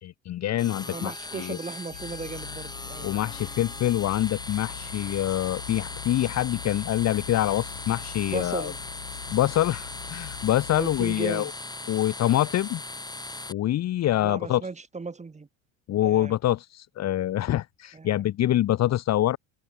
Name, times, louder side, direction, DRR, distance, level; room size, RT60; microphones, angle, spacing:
voice 1, 0.0-1.6 3.0-8.7 9.3-11.5 11.9-12.8 13.5-14.6 15.9-19.4, left 13 dB, 40° left, 1.2 m, -25 dB
sound 1, 0.6-13.5, left 2 dB, 10° left, 2.8 m, -39 dB
voice 2, 0.9-3.1 8.3-8.8 10.7-11.5 14.1-15.5 16.0-16.4 17.9-18.2, right 4 dB, 15° right, 2.1 m, -36 dB
sound 2, 1.9-11.2, left 13 dB, 80° left, 1.9 m, -43 dB
hypercardioid pair, 70°, 40 cm